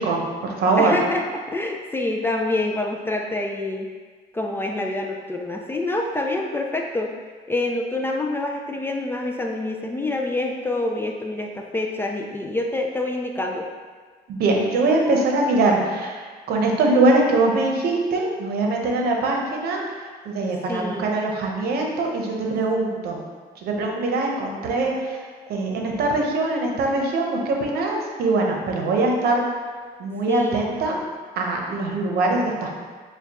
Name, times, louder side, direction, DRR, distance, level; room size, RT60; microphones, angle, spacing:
voice 1, 0.0-0.9 14.3-19.8 20.2-23.2 23.6-25.2 25.5-29.4 30.0-31.0 31.4-32.8, right 2 dB, 65° right, 0 dB, 0.8 m, -22 dB
voice 2, 0.8-3.9 4.3-7.1 7.5-13.7 20.7-21.1 30.3-30.7, left 2 dB, 15° left, 1 dB, 0.3 m, -26 dB
6.7 x 2.3 x 2.9 m, 1.5 s
cardioid pair, 110°, 17 cm